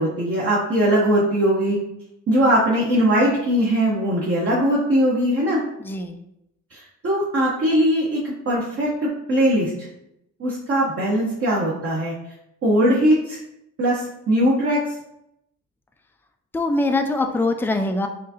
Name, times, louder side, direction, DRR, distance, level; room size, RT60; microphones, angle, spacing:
voice 1, 0.0-1.8 2.3-5.6 6.7-9.9 10.4-12.1 12.6-13.4 13.8-14.8, equal, 45° right, -5 dB, 1.1 m, -20 dB
voice 2, 5.8-6.1 16.5-18.1, left 2 dB, 5° left, 6 dB, 0.4 m, -22 dB
4.7 x 2.6 x 2.8 m, 0.80 s
supercardioid pair, 75°, 32 cm